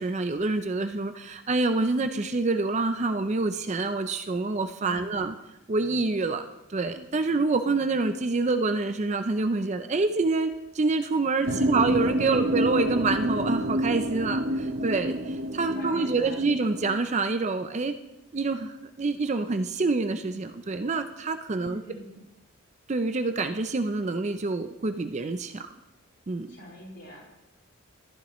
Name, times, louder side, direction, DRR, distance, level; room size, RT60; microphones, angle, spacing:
voice 1, 0.0-5.3 5.7-17.9 18.3-21.8 22.9-25.6 26.3-26.6, right 3 dB, 30° right, 8 dB, 0.4 m, -27 dB
voice 2, 4.8-5.3 11.4-11.7 12.2-12.4 15.6-16.4 21.6-22.2 26.5-27.2, equal, 50° left, -4 dB, 4.1 m, -45 dB
sound 1, 11.5-17.0, equal, 60° right, 0.8 m, -28 dB
14.0 x 10.0 x 3.1 m, 0.95 s
head